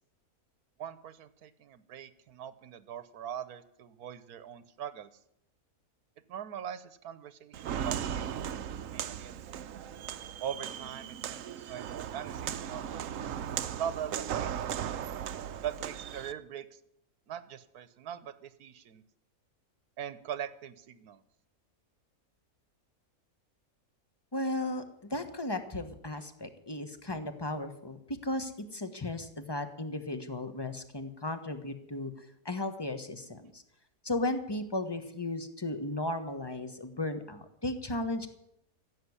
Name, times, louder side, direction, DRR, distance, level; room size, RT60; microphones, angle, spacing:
voice 1, 0.8-5.1 6.3-8.6 8.9-9.6 10.4-13.4 13.8-14.9 15.6-16.8 17.3-19.0 20.0-21.2 26.1-26.2, right 9 dB, 85° right, 15 dB, 1.4 m, -41 dB
Walk footsteps, 7.5-16.3, right 9 dB, 65° right, 1.0 m, -37 dB
voice 2, 24.3-24.8 25.1-32.1 32.4-33.6 34.0-38.3, left 2 dB, 20° left, 8 dB, 1.2 m, -35 dB
15.5 x 7.6 x 9.7 m, 0.76 s
omnidirectional pair, 1.6 m